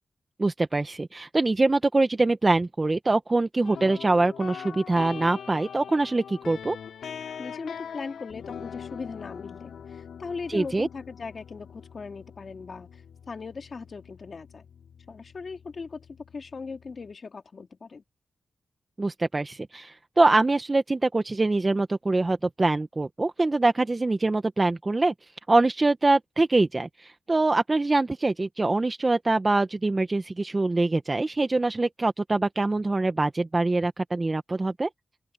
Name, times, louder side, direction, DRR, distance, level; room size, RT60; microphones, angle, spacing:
voice 1, 0.4-6.8 10.5-10.9 19.0-25.1 25.5-34.9, right 2 dB, 30° right, 1.2 m, -24 dB
sound 1, 3.6-17.1, left 7 dB, 90° left, 2.8 m, -42 dB
voice 2, 7.4-14.6 15.1-16.1 16.3-18.0, left 4 dB, 55° left, 2.4 m, -39 dB
open air
cardioid pair, 60°, 0 cm